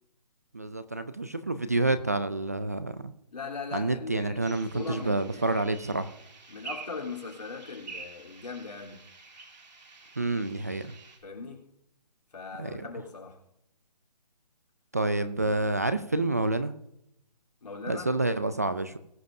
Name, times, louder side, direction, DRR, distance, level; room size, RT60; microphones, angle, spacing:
voice 1, 0.5-3.1 3.7-6.2 10.2-10.9 12.6-12.8 14.9-16.7 17.9-19.0, right 2 dB, 25° right, 0.3 m, -28 dB
voice 2, 3.3-5.2 6.5-9.1 11.2-11.7 12.3-13.4 17.6-18.1, left 4 dB, 70° left, 3.3 m, -39 dB
sound 1, 4.4-11.2, right 4 dB, 85° right, 2.5 m, -47 dB
20.0 x 7.5 x 2.6 m
hypercardioid pair, 165°, 21 cm